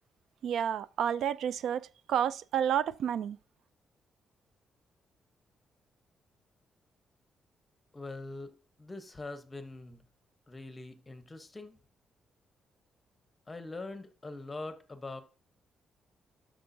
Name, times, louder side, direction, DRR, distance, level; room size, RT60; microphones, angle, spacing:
voice 1, 0.4-3.4, right 9 dB, 70° right, 0.3 m, -30 dB
voice 2, 7.9-8.5 8.8-10.0 10.5-11.8 13.5-15.2, left 2 dB, 15° left, 0.9 m, -43 dB
12.5 x 6.4 x 2.7 m
cardioid pair, 165°, 0 cm